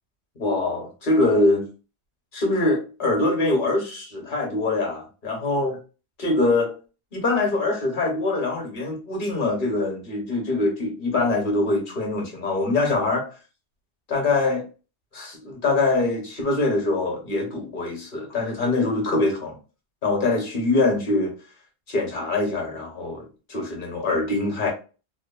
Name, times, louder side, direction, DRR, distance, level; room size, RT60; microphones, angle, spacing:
voice 1, 0.4-1.7 2.3-5.7 6.2-6.8 7.1-13.3 14.1-14.6 15.1-19.6 20.0-21.3 21.9-24.7, left 2 dB, 50° left, 0.9 m, -23 dB
3.0 x 2.1 x 2.2 m
omnidirectional pair, 1.2 m